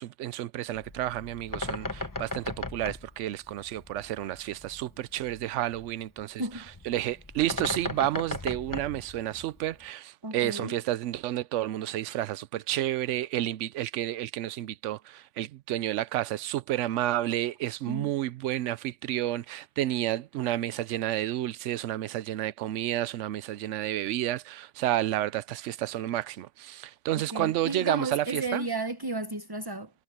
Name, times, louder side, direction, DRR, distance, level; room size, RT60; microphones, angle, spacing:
voice 1, 0.0-6.4 6.8-28.7, right 13 dB, 70° right, 0.8 m, -31 dB
Bird, 0.7-9.8, left 2 dB, 15° left, 0.8 m, -38 dB
voice 2, 10.2-10.7 17.9-18.1 27.3-29.9, right 2 dB, 20° right, 1.0 m, -33 dB
omnidirectional pair, 1.4 m